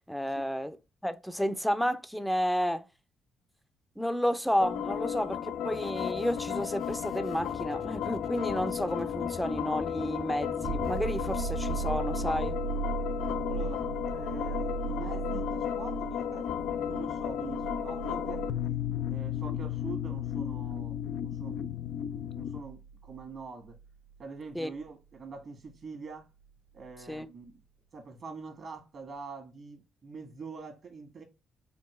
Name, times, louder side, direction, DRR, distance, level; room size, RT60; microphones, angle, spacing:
voice 1, 0.1-0.8 1.0-2.8 4.0-12.6 24.5-24.7 27.1-27.3, equal, ahead, 0.6 m, -31 dB
sound 1, 4.6-22.6, left 9 dB, 85° left, 0.4 m, -34 dB
sound 2, 5.7-12.5, left 3 dB, 35° left, 0.6 m, -47 dB
sound 3, 10.6-24.1 26.8-26.9, right 6 dB, 85° right, 1.1 m, -38 dB
voice 2, 13.5-18.5 19.1-21.0 21.2-21.7 22.3-23.8 24.2-26.3 26.7-27.6 27.9-31.2, right 4 dB, 50° right, 1.7 m, -44 dB
4.5 x 3.0 x 3.1 m
cardioid pair, 90°, 0 cm